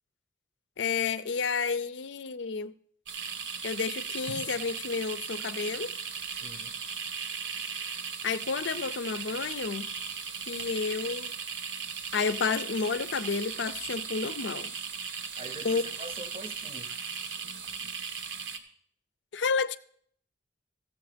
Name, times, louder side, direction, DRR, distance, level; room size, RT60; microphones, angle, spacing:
voice 1, 0.8-2.7 3.6-5.9 8.2-9.9 10.5-11.3 12.1-14.7 15.6-15.8 19.3-19.8, left 5 dB, 75° left, 0.5 m, -30 dB
sound 1, 3.1-18.6, right 6 dB, 85° right, 1.0 m, -37 dB
voice 2, 6.3-6.8 15.4-17.0, right 2 dB, 35° right, 0.7 m, -44 dB
14.5 x 7.6 x 5.1 m
head